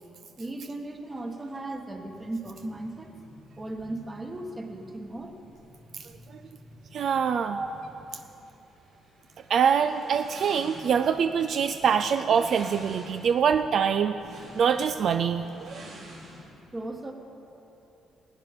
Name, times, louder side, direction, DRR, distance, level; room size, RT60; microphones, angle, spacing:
voice 1, 0.4-3.1 3.6-5.3 7.5-7.7 16.7-17.1, right 2 dB, 25° right, 4 dB, 1.3 m, -36 dB
sound 1, 1.1-16.4, equal, 80° right, 3.1 m, -50 dB
voice 2, 5.9-6.4 6.9-7.6 9.5-14.2 14.5-15.8, right 7 dB, 60° right, 9 dB, 0.3 m, -24 dB
15.0 x 9.1 x 5.1 m, 3.0 s
cardioid pair, 90°, 0 cm